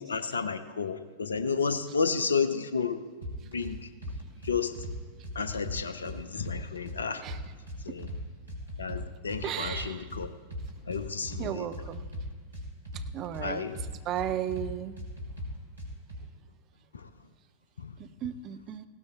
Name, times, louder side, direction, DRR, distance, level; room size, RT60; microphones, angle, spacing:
voice 1, 0.0-3.0 3.4-3.9 4.4-4.8 5.3-7.2 7.9-8.1 8.8-10.3 10.8-11.7 13.4-13.8 16.9-17.1 17.8-17.9, left 5 dB, 70° left, 12 dB, 0.7 m, -31 dB
sound 1, 3.2-3.7 4.0-4.9 5.2-7.0 7.3-8.2 8.5-10.2 10.5-11.4 11.7-13.4 13.7-14.7 15.0-16.2, left 1 dB, 85° right, 3.8 m, -39 dB
voice 2, 9.4-10.1 11.4-12.1 13.1-13.6 14.1-15.0 18.0-18.8, right 11 dB, 35° right, 9 dB, 0.7 m, -34 dB
18.5 x 16.5 x 2.4 m, 1.4 s
figure-of-eight pair, 90°, 0 cm